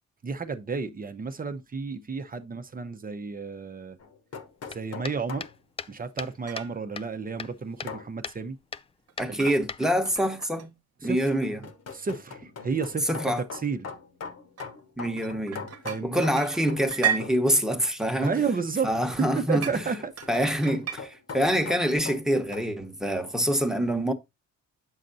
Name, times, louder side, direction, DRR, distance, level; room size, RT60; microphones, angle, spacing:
voice 1, 0.2-4.0 4.7-5.5 5.9-8.6 9.3-9.5 11.0-11.2 11.9-13.2 13.5-13.9 15.8-16.2 18.2-18.9 19.2-20.1, right 5 dB, 30° right, 0.8 m, -31 dB
Metal hit, 4.0-5.6 7.9-8.1 9.5-9.7 11.0-16.9 17.2-17.5 19.6-22.7, left 5 dB, 55° left, 1.3 m, -41 dB
sound 1, 4.7-6.7 7.0-8.0 8.2-8.4 8.7-8.9 9.2-10.2, left 5 dB, 20° left, 0.3 m, -38 dB
sound 2, 6.5-6.8 9.1-9.6 10.1-10.7 11.3-11.7 12.8-13.1 13.6-13.7 14.6-16.0 16.3-17.3 19.6-19.8 20.2-21.0, right 10 dB, 50° right, 1.1 m, -33 dB
voice 2, 9.2-10.7 11.0-11.7 13.1-13.4 15.0-15.7 16.0-18.4 18.8-19.8 20.3-24.1, equal, ahead, 1.1 m, -26 dB
7.5 x 6.5 x 2.7 m
cardioid pair, 90°, 30 cm